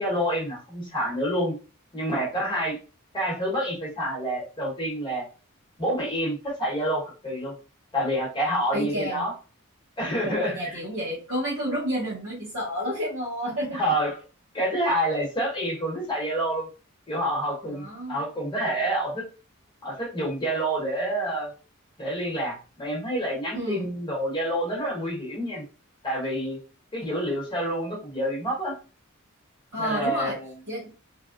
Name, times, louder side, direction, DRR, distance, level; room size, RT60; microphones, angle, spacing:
voice 1, 0.0-1.5 1.9-2.8 3.1-5.3 5.8-7.5 7.9-9.3 10.0-10.8 13.7-14.2 14.5-16.7 17.1-19.2 19.8-21.5 22.0-25.6 26.0-26.6 26.9-28.7 29.8-30.5, equal, 20° left, -4 dB, 1.1 m, -28 dB
voice 2, 8.7-9.3 10.2-13.8 17.6-18.2 23.5-23.9 29.7-30.4 30.7-30.9, equal, 70° right, -6 dB, 0.9 m, -30 dB
3.3 x 2.2 x 2.4 m, 0.34 s
head